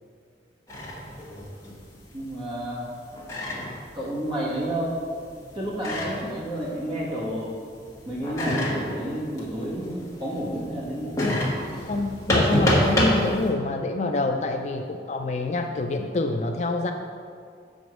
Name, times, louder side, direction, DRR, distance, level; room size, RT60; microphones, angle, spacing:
sound 1, 0.7-7.5 7.8-13.5, left 1 dB, 15° left, 1.4 m, -28 dB
voice 1, 2.1-2.9 3.9-4.9 5.5-7.5 8.0-11.2, right 1 dB, 25° right, -6 dB, 1.9 m, -30 dB
voice 2, 11.9-16.9, left 2 dB, 40° left, 5 dB, 0.4 m, -27 dB
6.9 x 5.0 x 6.2 m, 2.2 s
head